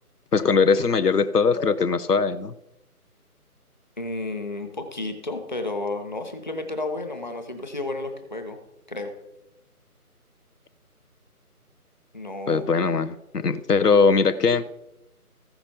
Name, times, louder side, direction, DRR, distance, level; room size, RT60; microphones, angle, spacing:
voice 1, 0.3-2.5 12.5-14.7, left 5 dB, 80° left, 12 dB, 0.7 m, -20 dB
voice 2, 4.0-8.6 8.9-9.1 12.1-12.6, left 2 dB, 30° left, 6 dB, 0.9 m, -32 dB
14.5 x 5.9 x 5.5 m, 0.91 s
figure-of-eight pair, 155°, 46 cm